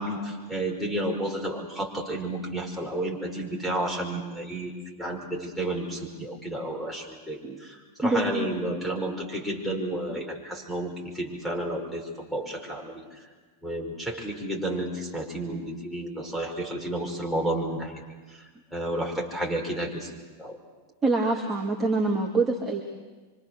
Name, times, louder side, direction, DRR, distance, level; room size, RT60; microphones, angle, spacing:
voice 1, 0.0-4.7 5.0-13.3 13.6-18.0 18.3-18.4 18.7-20.1 20.4-20.6, right 1 dB, 5° left, 0 dB, 5.6 m, -31 dB
voice 2, 8.0-8.5 15.5-15.6 21.0-22.8, right 3 dB, 15° right, -1 dB, 2.4 m, -25 dB
26.0 x 25.0 x 6.7 m, 1.3 s
figure-of-eight pair, 90°, 0 cm